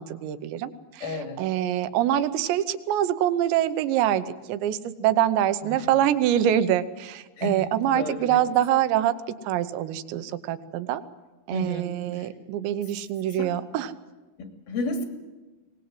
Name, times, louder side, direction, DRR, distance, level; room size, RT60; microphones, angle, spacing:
voice 1, 0.0-1.1 1.4-9.1 9.4-11.0 11.5-13.9, right 11 dB, 80° right, 12 dB, 3.2 m, -25 dB
voice 2, 1.0-1.4 5.6-5.9 7.4-8.4 11.5-12.3 13.3-13.5 14.4-15.1, left 2 dB, 60° left, 6 dB, 4.2 m, -33 dB
24.0 x 19.0 x 7.9 m, 1.2 s
omnidirectional pair, 5.2 m